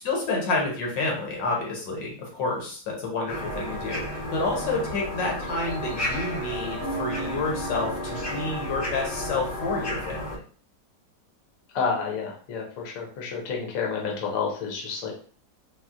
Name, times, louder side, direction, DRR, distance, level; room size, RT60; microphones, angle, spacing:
voice 1, 0.0-4.0 4.3-10.4, left 3 dB, 75° left, 0 dB, 1.5 m, -29 dB
sound 1, 3.3-10.4, left 1 dB, 40° left, 0.8 m, -32 dB
Keyboard (musical), 6.8-9.4, right 3 dB, 60° right, 0.8 m, -38 dB
voice 2, 11.7-15.1, left 5 dB, 60° left, -1 dB, 1.1 m, -29 dB
4.0 x 2.0 x 2.4 m, 0.43 s
omnidirectional pair, 2.0 m